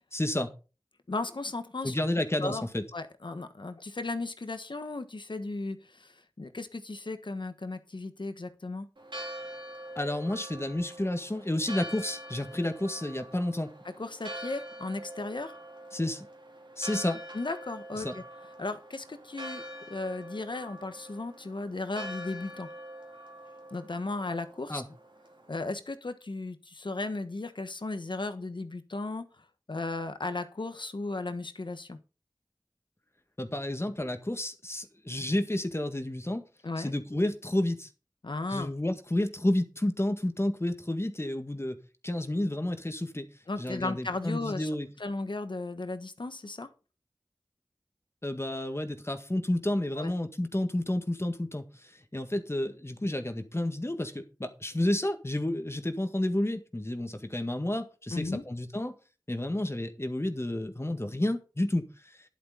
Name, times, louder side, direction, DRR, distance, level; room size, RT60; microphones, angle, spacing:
voice 1, 0.1-0.5 1.8-2.8 10.0-13.7 15.9-16.3 16.8-17.2 18.0-18.1 24.7-24.8 33.4-36.4 36.8-37.9 38.5-41.8 42.0-43.3 43.6-44.9 48.2-59.0 59.3-62.2, left 1 dB, 30° left, 7 dB, 1.8 m, -31 dB
voice 2, 1.1-1.9 2.4-2.6 2.9-8.9 13.8-15.6 17.3-18.2 18.6-22.7 23.7-24.8 25.5-32.0 36.6-36.9 38.2-38.7 43.5-44.7 45.0-46.7 50.0-50.1 58.1-58.4, left 2 dB, 80° left, 9 dB, 1.4 m, -35 dB
Church bell, 9.0-25.6, right 1 dB, 80° right, 2.7 m, -44 dB
11.0 x 11.0 x 4.0 m, 0.33 s
wide cardioid pair, 40°, 8 cm